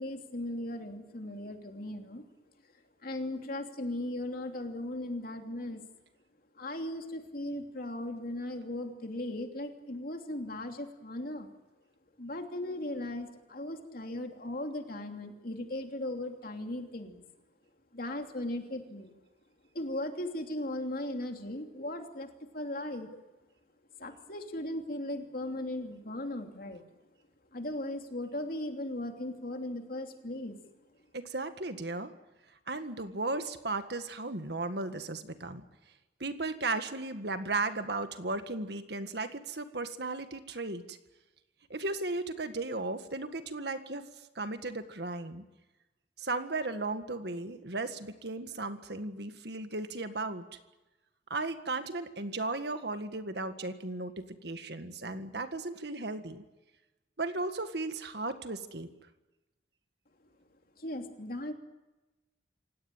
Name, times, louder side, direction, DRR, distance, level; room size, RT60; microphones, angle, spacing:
voice 1, 0.0-2.2 3.0-5.8 6.6-11.5 12.2-17.2 17.9-19.1 19.7-22.3 22.5-23.2 24.0-26.8 27.5-30.5 60.8-61.5, left 1 dB, 50° left, 4 dB, 3.0 m, -37 dB
voice 2, 31.1-32.1 32.7-35.6 36.2-41.0 41.7-44.1 44.4-45.4 46.2-50.5 51.3-56.4 57.2-58.9, right 3 dB, 60° right, 9 dB, 1.8 m, -35 dB
27.0 x 17.5 x 9.1 m, 1.1 s
head